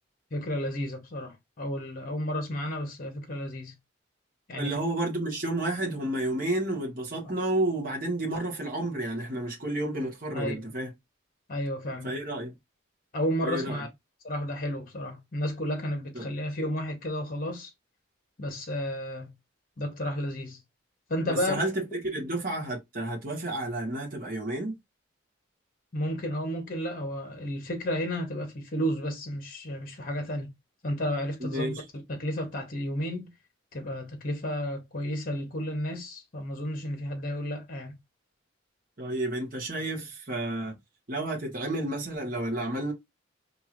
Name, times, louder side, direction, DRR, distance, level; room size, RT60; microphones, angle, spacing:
voice 1, 0.3-3.7 4.5-4.8 7.2-7.3 10.3-10.9 11.5-12.2 13.1-13.9 14.2-17.7 18.4-19.3 19.8-20.6 21.1-21.6 25.9-30.5 30.8-31.8 32.1-33.3 33.7-37.9, equal, 45° left, 1.0 m, -32 dB
voice 2, 4.5-10.9 12.0-12.5 13.4-13.8 16.1-16.3 21.3-24.7 31.4-31.8 39.0-40.7 41.1-42.9, right 1 dB, 40° right, 1.4 m, -31 dB
4.5 x 2.9 x 2.5 m
head